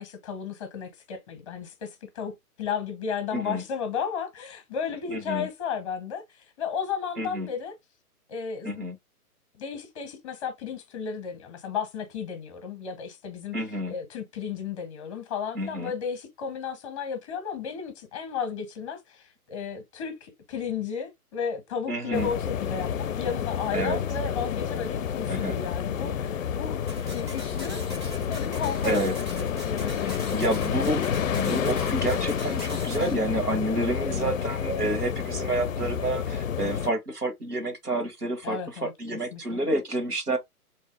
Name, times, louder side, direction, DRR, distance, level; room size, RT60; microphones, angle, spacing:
voice 1, 0.0-2.3 2.6-7.7 8.3-8.8 9.6-13.6 13.9-27.8 28.3-30.5 33.0-33.1 34.0-34.3 38.4-38.9 39.3-39.6, left 6 dB, 20° left, 0.8 m, -34 dB
voice 2, 3.3-3.6 5.1-5.5 7.2-7.5 8.6-8.9 13.5-13.9 15.5-15.9 21.9-22.3 23.7-24.0 25.3-25.6 28.8-29.1 30.0-31.0 31.3-40.4, right 1 dB, 80° right, 1.3 m, -29 dB
sound 1, 22.1-36.9, left 8 dB, 60° left, 0.5 m, -29 dB
sound 2, 26.9-33.1, equal, 20° right, 0.5 m, -41 dB
3.8 x 2.8 x 3.5 m
figure-of-eight pair, 125°, 46 cm